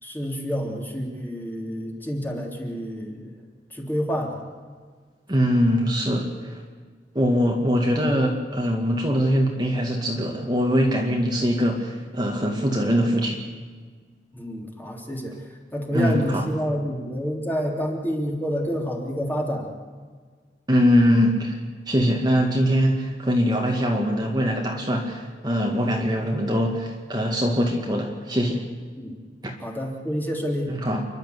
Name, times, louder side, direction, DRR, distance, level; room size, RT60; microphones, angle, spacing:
voice 1, 0.0-3.3 3.7-4.4 14.3-15.3 15.7-19.7 29.0-29.2 29.6-30.7, equal, 10° left, -1 dB, 3.4 m, -28 dB
voice 2, 5.3-6.6 7.1-13.4 15.9-16.5 20.7-21.6 21.9-28.6 29.4-29.5 30.7-31.0, equal, 25° right, 0 dB, 2.1 m, -22 dB
29.5 x 12.0 x 8.3 m, 1.5 s
head